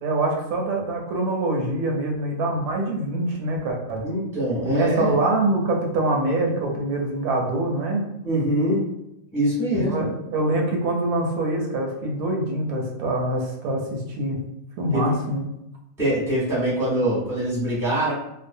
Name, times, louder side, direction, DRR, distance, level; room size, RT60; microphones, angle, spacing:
voice 1, 0.0-4.1 4.6-8.0 9.7-14.4 14.8-15.4, right 2 dB, 85° right, 1 dB, 1.1 m, -24 dB
voice 2, 4.0-5.1 8.2-8.8 9.3-10.1 14.9-15.0 16.0-18.1, right 1 dB, ahead, -8 dB, 0.8 m, -23 dB
2.6 x 2.0 x 2.5 m, 0.85 s
omnidirectional pair, 1.5 m